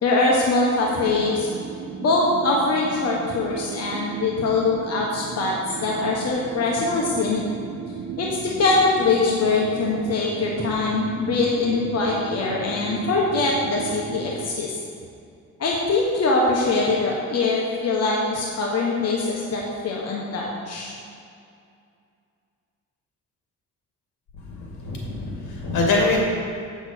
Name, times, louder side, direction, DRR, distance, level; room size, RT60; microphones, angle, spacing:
voice 1, 0.0-1.5 2.0-5.5 5.8-7.4 8.2-14.8 15.6-20.9, left 3 dB, 55° left, -2 dB, 1.4 m, -23 dB
sound 1, 0.9-14.5, right 6 dB, 60° right, 0.9 m, -35 dB
voice 2, 24.6-26.2, left 3 dB, 85° left, -3 dB, 2.5 m, -24 dB
8.0 x 7.1 x 6.2 m, 2.4 s
cardioid pair, 90°, 30 cm